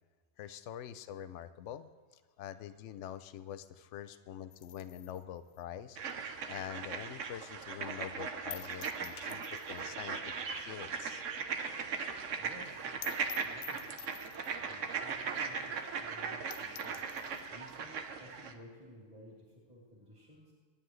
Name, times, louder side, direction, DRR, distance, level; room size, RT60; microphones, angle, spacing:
voice 1, 0.4-1.9 2.4-10.3 10.7-11.2, left 10 dB, 75° left, 12 dB, 0.9 m, -45 dB
sound 1, 4.5-7.1 7.5-7.6 7.9-8.0 8.5-9.9 10.2-10.3 10.6-10.7 11.1-11.2 11.4-11.5 11.8-11.9 12.2-12.3 12.6-12.7 13.0-14.7 15.3-15.4 15.8-15.9 16.2-16.3 16.5-17.5, left 9 dB, 60° left, 0.5 m, -49 dB
sound 2, 6.0-18.5, right 5 dB, 80° right, 1.3 m, -39 dB
voice 2, 12.1-13.8 14.6-17.0 17.5-20.5, equal, 35° right, -4 dB, 3.2 m, -56 dB
27.0 x 10.0 x 3.2 m, 1.5 s
omnidirectional pair, 1.3 m